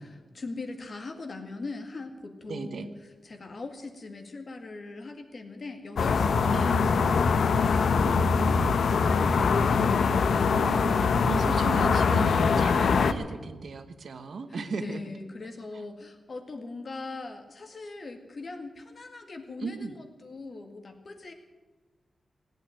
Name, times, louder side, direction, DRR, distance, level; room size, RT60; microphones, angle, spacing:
voice 1, 0.0-2.9 3.2-10.5 14.5-21.3, left 3 dB, 45° left, 5 dB, 2.0 m, -41 dB
voice 2, 2.5-2.8 6.5-6.8 10.4-15.0 19.6-19.9, right 4 dB, 65° right, 9 dB, 1.2 m, -36 dB
sound 1, 6.0-13.1, left 5 dB, 85° left, 0.8 m, -23 dB
17.5 x 9.0 x 9.1 m, 1.3 s
wide cardioid pair, 130°, 0 cm